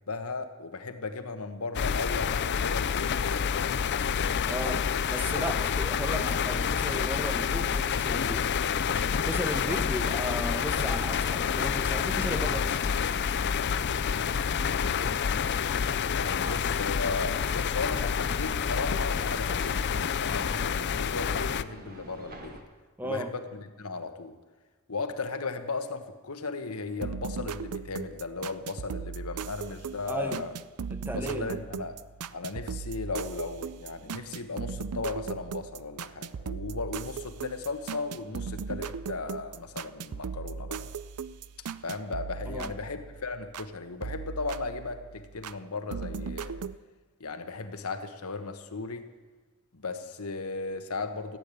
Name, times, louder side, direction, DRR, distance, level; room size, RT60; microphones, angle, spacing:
voice 1, 0.1-3.9 4.8-4.9 5.3-5.5 6.1-6.2 14.1-14.4 14.7-15.2 16.1-22.6 23.0-24.4 24.9-30.5 31.1-32.0 32.3-40.9 41.8-46.6 47.2-49.0 49.7-51.4, left 3 dB, 75° left, 7 dB, 1.3 m, -36 dB
sound 1, 1.7-21.6, left 7 dB, 50° left, 0.5 m, -28 dB
voice 2, 4.5-8.5 9.2-12.8 16.4-16.6 23.0-23.3 30.1-30.4 30.9-31.6 42.5-42.7, right 1 dB, 10° right, 8 dB, 0.9 m, -35 dB
sound 2, 5.0-22.6, right 1 dB, 40° right, 1.9 m, -48 dB
sound 3, 27.0-43.7 44.0-45.6 45.9-46.8, right 5 dB, 80° right, 0.5 m, -38 dB
15.0 x 8.7 x 9.9 m, 1.3 s
head